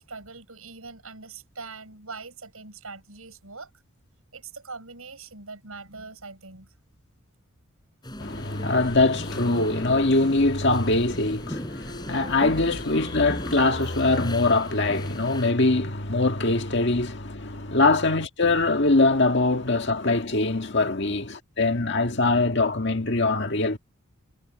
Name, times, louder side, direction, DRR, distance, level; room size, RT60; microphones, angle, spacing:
voice 1, 0.0-3.7 4.3-6.7, right 4 dB, 80° right, 6.3 m, -42 dB
sound 1, 8.0-15.5, left 1 dB, 20° left, 8.0 m, -37 dB
voice 2, 8.2-23.8, left 2 dB, 55° left, 1.9 m, -23 dB
head